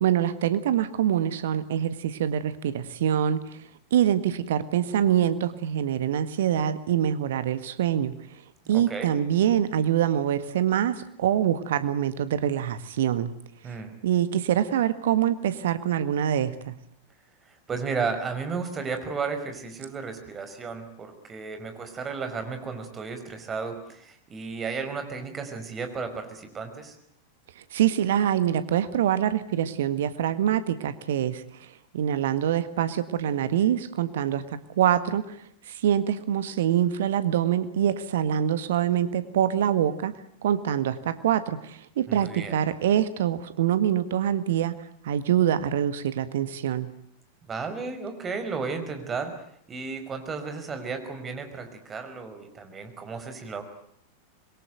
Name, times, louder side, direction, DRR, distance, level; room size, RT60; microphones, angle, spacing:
voice 1, 0.0-3.4 3.9-8.2 8.7-13.3 14.0-16.8 27.7-31.7 31.9-35.4 35.7-40.1 40.4-44.8 45.0-46.9, right 10 dB, 60° right, 13 dB, 1.7 m, -25 dB
voice 2, 8.6-9.1 13.6-13.9 17.5-27.0 42.1-42.6 47.4-53.6, right 5 dB, 20° right, 7 dB, 5.3 m, -34 dB
26.0 x 22.5 x 9.3 m, 0.69 s
figure-of-eight pair, 90°, 0 cm